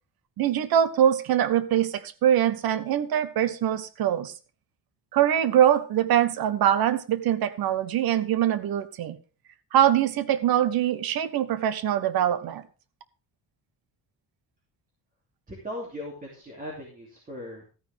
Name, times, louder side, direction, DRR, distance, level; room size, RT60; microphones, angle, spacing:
voice 1, 0.4-4.3 5.1-9.2 9.7-12.6, right 10 dB, 70° right, 14 dB, 1.1 m, -23 dB
voice 2, 15.5-17.7, left 1 dB, 20° right, -2 dB, 2.8 m, -38 dB
13.5 x 9.9 x 3.5 m, 0.35 s
cardioid pair, 175°, 38 cm